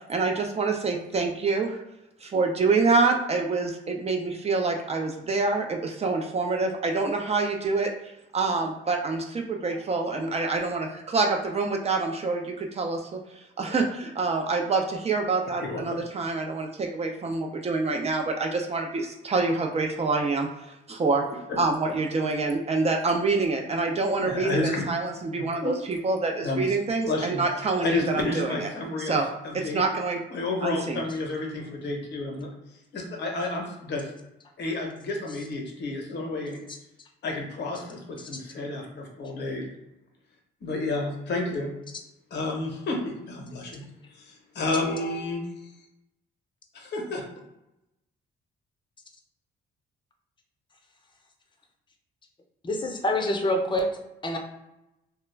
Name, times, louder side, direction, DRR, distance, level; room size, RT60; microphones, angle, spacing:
voice 1, 0.1-1.8 2.2-13.2 13.6-21.2 21.6-28.7 29.0-29.3 29.6-30.2 30.6-31.0, right 3 dB, 30° right, 2 dB, 0.3 m, -26 dB
voice 2, 15.6-16.0 24.2-24.9 25.3-25.7 26.4-26.8 27.1-27.4 27.8-29.2 29.4-29.8 30.3-32.5 32.9-34.1 34.6-36.6 37.2-39.7 40.6-41.7 42.3-43.8 44.1-45.4 46.7-47.2, left 2 dB, 60° left, 1 dB, 0.7 m, -31 dB
voice 3, 52.6-53.9 54.2-54.4, left 1 dB, 25° left, 3 dB, 0.5 m, -26 dB
2.3 x 2.1 x 3.2 m, 0.90 s
cardioid pair, 90°, 20 cm